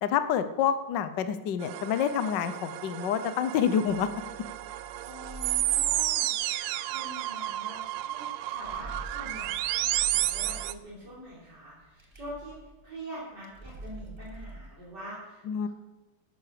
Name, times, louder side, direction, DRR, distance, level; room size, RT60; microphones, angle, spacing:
voice 1, 0.0-4.1 15.5-15.7, left 8 dB, 65° left, 11 dB, 1.4 m, -27 dB
sound 1, 1.6-10.7, right 14 dB, 85° right, 1.5 m, -31 dB
sound 2, 3.9-14.7, right 2 dB, 15° right, 1.3 m, -47 dB
voice 2, 5.0-12.5 12.8-15.7, equal, 50° right, -8 dB, 4.8 m, -44 dB
13.5 x 11.0 x 6.7 m, 1.1 s
omnidirectional pair, 2.3 m